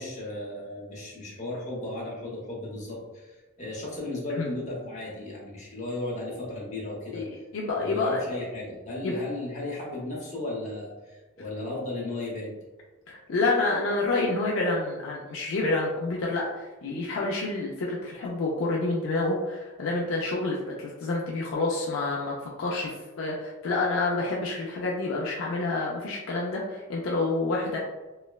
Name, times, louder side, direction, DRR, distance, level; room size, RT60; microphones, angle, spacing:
voice 1, 0.0-7.2 7.7-12.5, left 2 dB, 35° left, -4 dB, 0.8 m, -35 dB
voice 2, 7.1-8.2 9.0-9.2 13.1-27.8, left 2 dB, 65° left, -3 dB, 0.4 m, -28 dB
3.0 x 2.1 x 2.2 m, 1.2 s
head